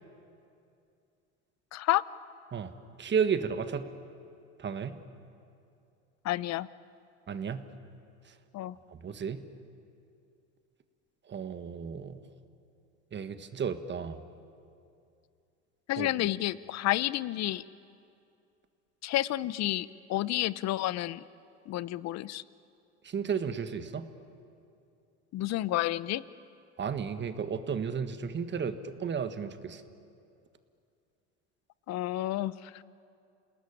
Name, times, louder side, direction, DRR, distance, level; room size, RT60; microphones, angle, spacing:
voice 1, 1.7-2.0 6.2-6.7 8.5-8.8 15.9-17.6 19.0-21.2 21.7-22.4 25.3-26.2 31.9-32.8, left 15 dB, 45° left, 18 dB, 0.8 m, -30 dB
voice 2, 3.0-3.9 4.6-5.0 7.3-7.7 8.9-9.4 11.3-12.2 13.1-14.2 16.0-16.1 23.0-24.1 26.8-29.8, right 6 dB, 30° right, 9 dB, 1.5 m, -33 dB
28.0 x 19.0 x 9.9 m, 2.5 s
hypercardioid pair, 90°, 36 cm